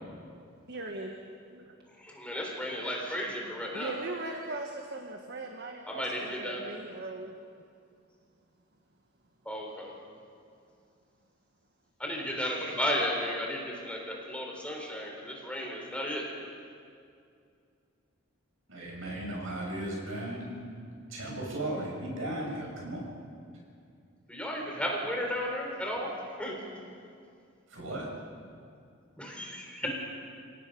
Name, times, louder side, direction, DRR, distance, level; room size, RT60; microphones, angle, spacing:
voice 1, 0.7-1.2 1.5-1.7 3.7-7.4, right 2 dB, 55° right, 2 dB, 1.6 m, -39 dB
voice 2, 2.0-3.9 5.8-6.6 9.5-9.9 12.0-16.2 24.3-26.1 26.4-26.6 29.2-29.9, equal, 5° left, -1 dB, 3.9 m, -34 dB
voice 3, 18.7-20.6 21.1-23.0 27.7-28.1 29.8-29.9, right 1 dB, 75° right, -2 dB, 6.9 m, -36 dB
29.5 x 18.0 x 5.5 m, 2.4 s
head